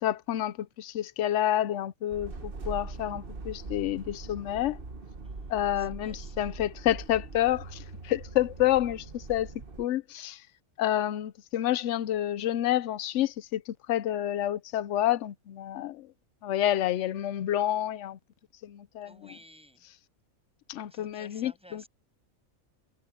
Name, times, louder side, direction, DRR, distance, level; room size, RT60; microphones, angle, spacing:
voice 1, 0.0-4.8 5.5-9.5 9.8-10.4 10.8-16.1 16.4-18.2 18.6-19.1 20.7-21.8, left 12 dB, 65° left, 0.9 m, -29 dB
sound 1, 2.1-9.9, right 3 dB, 40° right, 1.6 m, -42 dB
voice 2, 5.2-6.6 19.0-19.9 20.8-21.9, equal, 5° right, 7.4 m, -55 dB
omnidirectional pair, 1.5 m